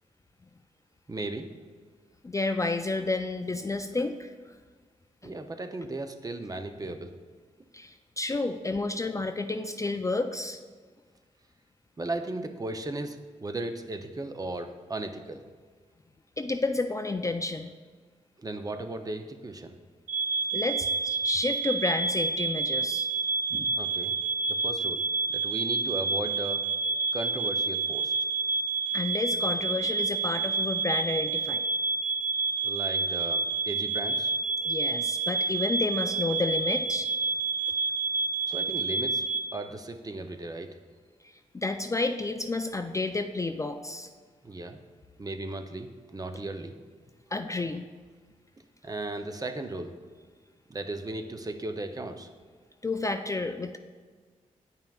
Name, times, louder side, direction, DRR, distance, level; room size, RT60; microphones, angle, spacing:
voice 1, 1.1-1.5 5.2-7.1 12.0-15.4 18.4-19.7 23.7-24.1 24.5-25.0 25.3-26.6 27.1-28.1 32.6-34.3 38.5-39.2 39.5-40.7 44.4-44.8 45.2-46.7 48.8-49.9 50.7-52.3, right 2 dB, 25° right, 6 dB, 0.6 m, -36 dB
voice 2, 2.2-4.3 5.2-5.3 7.7-10.6 16.4-17.7 20.5-23.1 23.5-23.8 28.9-31.6 34.6-37.1 41.5-44.1 47.3-47.9 52.8-53.8, left 2 dB, 25° left, 7 dB, 0.3 m, -30 dB
sound 1, 20.1-39.4, right 3 dB, 75° right, 0.6 m, -29 dB
8.9 x 5.6 x 2.3 m, 1.5 s
cardioid pair, 55°, 14 cm